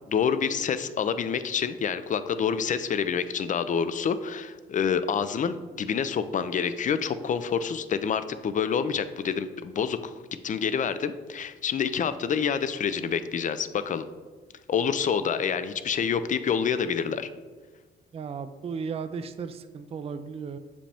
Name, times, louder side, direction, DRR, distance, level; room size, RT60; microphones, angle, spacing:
voice 1, 0.1-10.1 10.4-14.1 14.7-17.3, left 7 dB, 40° left, 12 dB, 0.4 m, -27 dB
voice 2, 18.1-20.6, right 5 dB, 30° right, 10 dB, 0.4 m, -35 dB
7.1 x 5.1 x 3.4 m, 1.4 s
cardioid pair, 90°, 20 cm